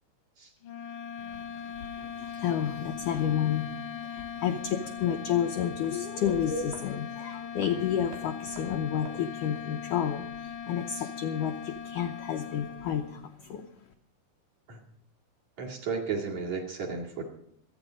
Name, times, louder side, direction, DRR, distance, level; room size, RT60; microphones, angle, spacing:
sound 1, 0.6-13.3, left 8 dB, 65° left, 2.0 m, -40 dB
voice 1, 1.2-13.7, left 9 dB, 80° left, 4 dB, 1.9 m, -31 dB
sound 2, 4.8-9.8 10.1-10.2, right 3 dB, 90° right, 5.3 m, -53 dB
voice 2, 15.6-17.3, right 5 dB, 50° right, -2 dB, 2.9 m, -34 dB
25.5 x 9.1 x 5.0 m, 0.71 s
omnidirectional pair, 4.9 m